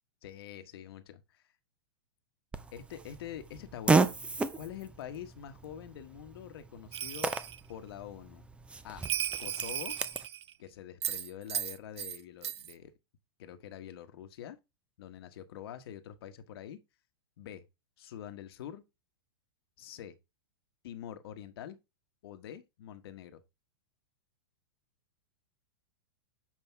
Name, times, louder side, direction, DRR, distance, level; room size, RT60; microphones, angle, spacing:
voice 1, 0.2-1.4 2.7-4.1 4.6-7.3 7.7-8.4 8.8-9.1 9.4-10.0 10.6-12.9 13.4-14.6 15.0-16.8 17.4-17.6 18.0-18.8 19.8-20.2 20.8-21.8 22.2-23.4, left 10 dB, 65° left, 1.2 m, -45 dB
Fart, 2.5-10.3, right 4 dB, 10° right, 0.5 m, -34 dB
Bell, 6.9-7.6 9.0-10.5 11.0-12.2 12.4-12.7, right 10 dB, 85° right, 0.5 m, -36 dB
7.5 x 5.2 x 3.4 m
hypercardioid pair, 125°, 14 cm